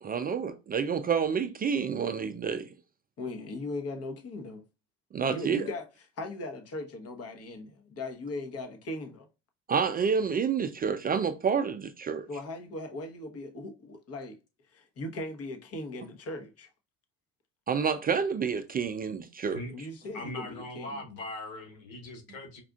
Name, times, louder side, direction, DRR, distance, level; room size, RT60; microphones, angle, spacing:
voice 1, 0.0-2.7 5.1-5.6 9.7-12.3 17.7-19.6, right 6 dB, 25° right, 0.4 m, -29 dB
voice 2, 3.2-4.6 5.3-5.9 6.2-9.3 12.3-14.4 14.7-16.7 19.7-21.0, left 2 dB, 40° left, 1.1 m, -38 dB
voice 3, 20.1-22.6, left 1 dB, 85° left, 1.5 m, -40 dB
5.1 x 2.4 x 2.3 m
supercardioid pair, 90°, 38 cm